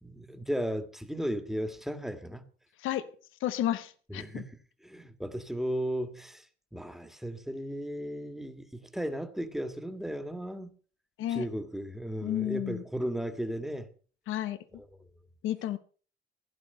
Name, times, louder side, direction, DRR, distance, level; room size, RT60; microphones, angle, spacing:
voice 1, 0.0-2.4 4.1-4.6 4.8-6.5 6.7-10.7 11.3-13.9 14.8-14.9, equal, ahead, 1.8 m, -35 dB
voice 2, 3.4-4.4 11.2-11.4 12.2-12.8 14.3-14.6 15.4-15.8, left 12 dB, 85° left, 1.0 m, -31 dB
16.0 x 10.5 x 5.5 m
cardioid pair, 90°, 20 cm